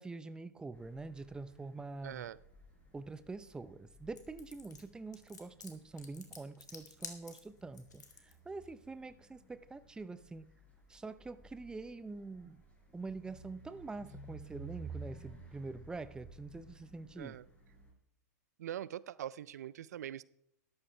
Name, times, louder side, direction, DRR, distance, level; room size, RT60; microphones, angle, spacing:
voice 1, 0.0-2.3 2.9-10.5 10.9-12.6 12.9-17.4, right 3 dB, 10° right, 0.6 m, -45 dB
sound 1, 0.7-17.9, right 3 dB, 15° left, 5.4 m, -55 dB
voice 2, 2.0-2.4 17.2-17.5 18.6-20.2, right 11 dB, 70° right, 0.5 m, -43 dB
sound 2, 4.2-8.3, left 4 dB, 90° left, 2.3 m, -50 dB
13.5 x 12.5 x 3.3 m
hypercardioid pair, 110°, 9 cm